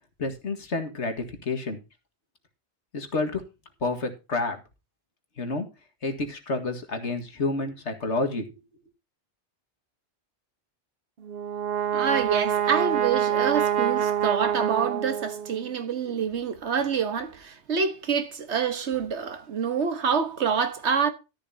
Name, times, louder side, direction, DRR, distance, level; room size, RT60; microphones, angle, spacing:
voice 1, 0.2-1.8 2.9-3.4 3.8-4.6 5.4-5.7 6.0-8.5, left 3 dB, 90° left, 2.2 m, -29 dB
Brass instrument, 11.2-15.7, right 9 dB, 60° right, 1.1 m, -26 dB
voice 2, 11.9-21.1, right 6 dB, 80° right, 1.6 m, -27 dB
13.0 x 11.0 x 2.8 m
omnidirectional pair, 1.1 m